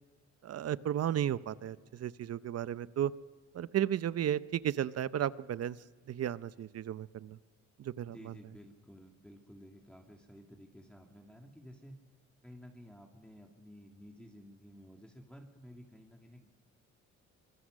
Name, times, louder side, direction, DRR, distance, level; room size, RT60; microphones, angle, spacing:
voice 1, 0.4-3.1 3.5-5.8 6.1-7.4 7.8-8.3, right 10 dB, 55° right, 16 dB, 0.8 m, -34 dB
voice 2, 8.1-12.0 12.4-16.5, equal, 5° left, 1 dB, 2.5 m, -53 dB
24.5 x 21.5 x 6.5 m, 1.4 s
cardioid pair, 90°, 30 cm